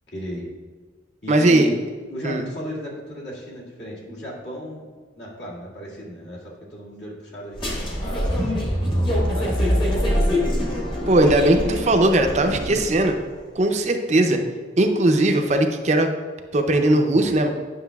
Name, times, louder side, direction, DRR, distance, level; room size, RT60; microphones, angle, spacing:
voice 1, 0.1-0.4 1.2-1.8 2.1-4.8 5.2-8.5 8.9-10.1, equal, 65° left, -5 dB, 2.1 m, -35 dB
voice 2, 1.3-1.7 2.2-2.4 11.1-13.2 13.6-14.4 14.8-16.1 16.5-17.5, right 1 dB, 40° right, 5 dB, 0.5 m, -18 dB
sound 1, 7.5-13.1, equal, 25° left, 1.1 m, -24 dB
9.3 x 6.1 x 2.3 m, 1.5 s
head